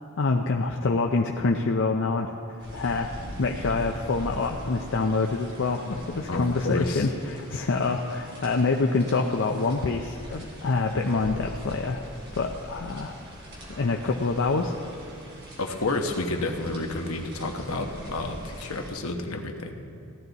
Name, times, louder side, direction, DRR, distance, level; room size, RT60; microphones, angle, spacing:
voice 1, 0.2-3.1 3.4-12.0 12.4-13.2 13.8-14.7, left 3 dB, 60° left, 2 dB, 0.5 m, -26 dB
sound 1, 2.6-18.9, equal, 50° right, 3.5 m, -42 dB
voice 2, 6.3-7.1 15.6-19.7, left 2 dB, 75° left, 4 dB, 1.1 m, -30 dB
16.0 x 12.0 x 4.0 m, 2.7 s
head